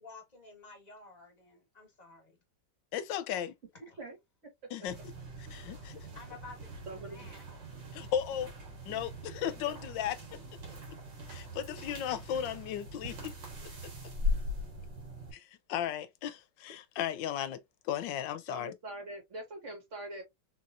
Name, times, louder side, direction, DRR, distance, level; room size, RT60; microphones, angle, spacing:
voice 1, 0.0-2.4 3.9-4.0 5.4-5.5 6.1-7.4 7.9-8.1 10.6-10.7, left 4 dB, 25° left, 1.3 m, -52 dB
voice 2, 2.9-3.6 4.7-5.0 5.5-6.1 7.9-8.5 8.9-10.2 11.3-13.3 15.3-18.7, left 10 dB, 85° left, 1.3 m, -35 dB
sound 1, 4.9-15.3, left 2 dB, 85° right, 2.0 m, -40 dB
voice 3, 6.9-7.2 9.7-9.8 18.5-20.2, right 2 dB, 40° right, 2.0 m, -43 dB
3.7 x 3.0 x 2.5 m
omnidirectional pair, 2.0 m